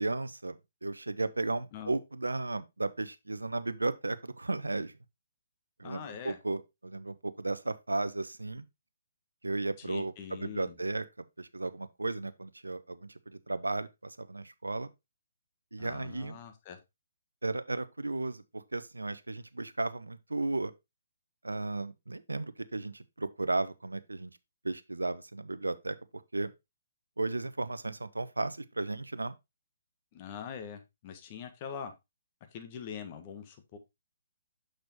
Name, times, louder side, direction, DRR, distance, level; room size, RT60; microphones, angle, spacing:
voice 1, 0.0-4.9 5.8-8.6 9.4-11.0 11.4-14.9 15.7-16.4 17.4-20.7 21.4-24.4 24.6-26.0 26.3-26.5 27.2-29.3, right 2 dB, 90° right, 0.6 m, -34 dB
voice 2, 5.8-6.4 9.8-10.7 15.8-16.8 30.1-31.9 32.5-33.8, left 7 dB, 35° left, 1.4 m, -43 dB
6.5 x 6.1 x 3.0 m
figure-of-eight pair, 135°, 0 cm